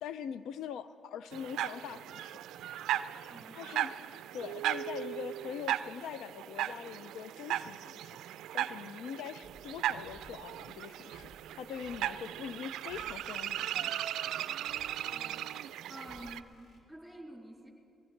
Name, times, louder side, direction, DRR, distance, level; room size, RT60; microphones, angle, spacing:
voice 1, 0.0-2.4 3.6-3.9 4.3-8.2 8.5-11.3 11.6-13.9, left 8 dB, 85° left, 13 dB, 0.4 m, -43 dB
sound 1, 1.3-16.4, right 12 dB, 85° right, 0.3 m, -37 dB
voice 2, 3.3-3.8 15.1-15.5 15.9-17.7, right 1 dB, ahead, -3 dB, 4.2 m, -49 dB
sound 2, 9.4-16.8, equal, 50° left, 3.6 m, -61 dB
23.0 x 17.0 x 3.3 m, 2.6 s
cardioid pair, 90°, 0 cm